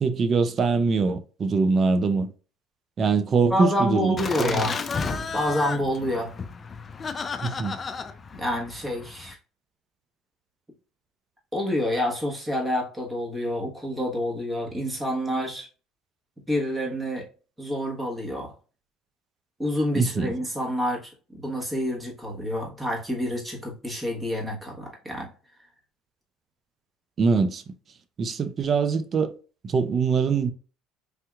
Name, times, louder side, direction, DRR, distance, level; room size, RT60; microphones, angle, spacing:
voice 1, 0.0-2.3 3.0-4.7 7.4-7.8 20.0-20.3 27.2-27.6 28.2-29.3 29.6-30.5, right 4 dB, 40° right, 0.5 m, -23 dB
voice 2, 3.5-4.7 5.3-6.3 8.4-9.4 11.5-15.7 16.5-17.3 17.6-18.5 19.6-25.3, equal, 15° right, 1.3 m, -28 dB
Laughter, 4.2-9.3, left 5 dB, 30° left, 0.4 m, -33 dB
3.4 x 2.8 x 2.3 m
supercardioid pair, 95°, 0 cm